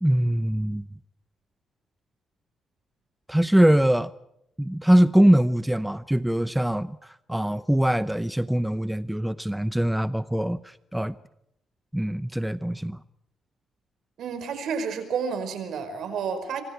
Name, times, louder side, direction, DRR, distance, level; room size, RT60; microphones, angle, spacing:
voice 1, 0.0-0.8 3.3-4.1 4.6-11.1 11.9-13.0, right 1 dB, 5° right, 0.8 m, -22 dB
voice 2, 14.2-16.6, right 6 dB, 70° right, 5.2 m, -30 dB
26.5 x 25.5 x 4.7 m
cardioid pair, 90°, 0 cm